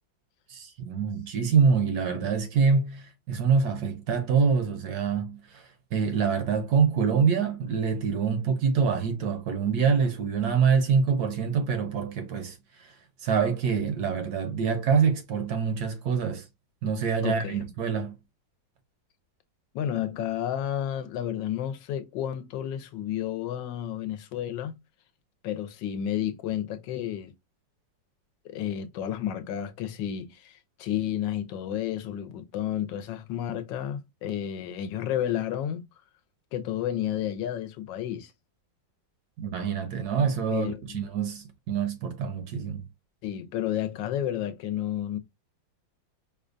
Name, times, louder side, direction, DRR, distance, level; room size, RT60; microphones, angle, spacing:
voice 1, 0.5-12.9 13.2-16.5 16.8-18.2 39.4-42.8, right 6 dB, 70° right, 1.0 m, -25 dB
voice 2, 17.2-17.7 19.7-24.8 25.4-27.3 28.4-35.8 36.5-38.3 40.5-41.0 43.2-45.2, left 10 dB, 80° left, 1.3 m, -31 dB
5.0 x 2.2 x 2.5 m
omnidirectional pair, 2.0 m